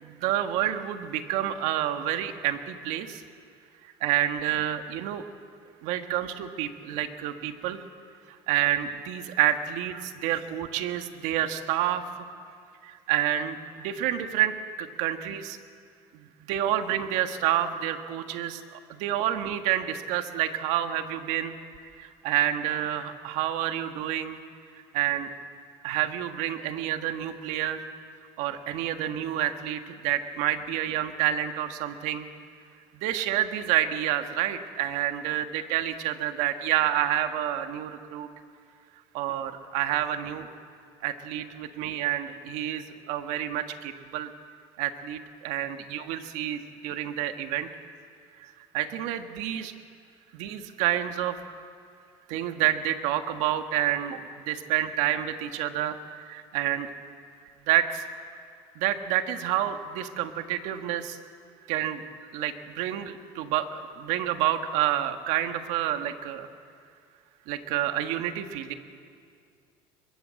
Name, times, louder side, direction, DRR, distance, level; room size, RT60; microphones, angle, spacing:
voice 1, 0.0-3.2 4.0-5.2 5.8-7.8 8.5-12.0 13.1-15.6 16.5-18.6 19.0-21.5 22.0-24.4 24.9-25.3 25.8-27.8 28.4-32.3 33.0-38.3 39.1-40.5 41.0-44.3 44.8-47.7 48.7-49.7 50.3-51.3 52.3-54.2 54.4-56.0 56.3-56.9 57.7-58.0 58.8-61.2 61.7-62.0 62.3-66.5 67.5-68.7, right 12 dB, 75° right, 7 dB, 1.6 m, -28 dB
22.5 x 22.5 x 7.7 m, 2.2 s
cardioid pair, 130°, 12 cm